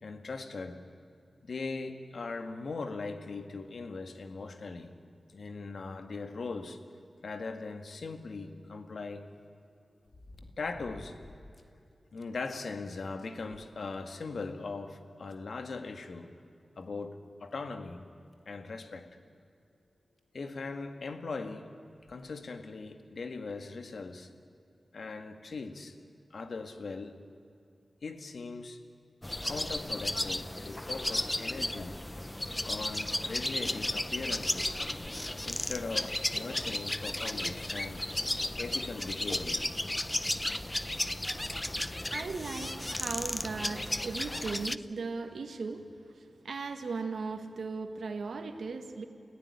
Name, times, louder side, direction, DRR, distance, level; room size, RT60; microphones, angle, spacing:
voice 1, 0.0-0.8 1.4-4.9 5.3-6.8 7.2-9.2 10.6-11.2 12.1-16.3 16.8-18.1 18.5-19.1 20.3-21.8 22.1-24.3 24.9-26.0 26.3-27.2 28.0-28.8 29.4-32.0 32.7-34.8 35.4-38.1 38.6-39.7, left 4 dB, 75° left, 7 dB, 1.9 m, -40 dB
sound 1, 10.1-11.8 12.2-12.3 12.7-12.8 13.2-14.3 15.3-15.4 16.8-16.9 17.5-17.6 18.3-18.5 19.9-20.0 20.2-20.3 22.0-22.3 23.0-23.1, left 1 dB, 50° left, 2.2 m, -53 dB
sound 2, 29.2-44.8, left 1 dB, 15° left, 0.7 m, -34 dB
voice 2, 41.7-45.9 46.2-49.0, right 4 dB, 85° right, 6 dB, 1.9 m, -37 dB
30.0 x 17.0 x 9.9 m, 2.5 s
wide cardioid pair, 75°, 0 cm